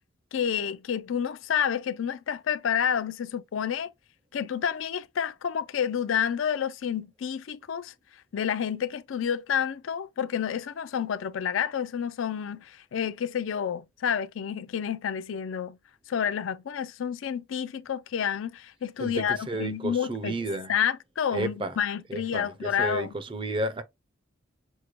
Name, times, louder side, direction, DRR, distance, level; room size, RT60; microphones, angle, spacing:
voice 1, 0.3-3.9 4.3-7.9 8.3-15.8 16.1-20.3 20.7-23.1, left 8 dB, 80° left, 0.4 m, -29 dB
voice 2, 19.0-20.7 21.3-21.8 22.1-23.8, right 2 dB, 25° right, 0.5 m, -32 dB
6.3 x 2.1 x 2.9 m
head